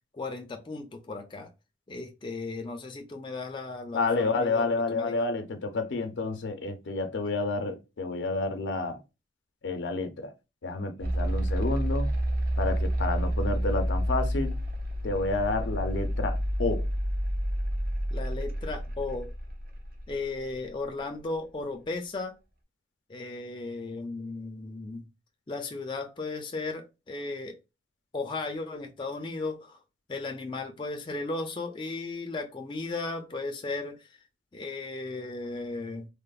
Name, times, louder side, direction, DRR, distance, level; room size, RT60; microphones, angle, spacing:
voice 1, 0.1-1.5 1.9-5.2 18.1-19.3 20.1-22.3 23.1-25.0 25.5-27.6 28.1-29.8 30.1-34.2 34.5-36.1, left 3 dB, 25° left, 0.3 m, -35 dB
voice 2, 3.9-9.0 9.6-10.3 10.6-12.1 12.6-14.5 15.0-16.9, left 3 dB, 85° left, 0.5 m, -29 dB
sound 1, 11.0-20.1, equal, 50° right, 0.5 m, -29 dB
2.9 x 2.0 x 2.3 m
head